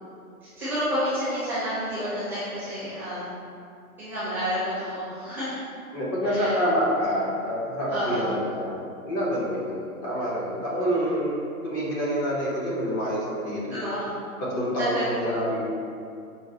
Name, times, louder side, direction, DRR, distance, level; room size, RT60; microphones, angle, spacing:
voice 1, 0.4-3.2 4.0-5.6 6.2-6.6 7.9-8.3 13.7-14.2 14.8-15.4, equal, 5° right, -14 dB, 0.6 m, -30 dB
voice 2, 5.9-11.4 11.6-13.8 14.5-15.6, equal, 25° left, -7 dB, 0.8 m, -27 dB
5.3 x 2.1 x 2.8 m, 2.4 s
figure-of-eight pair, 125°, 44 cm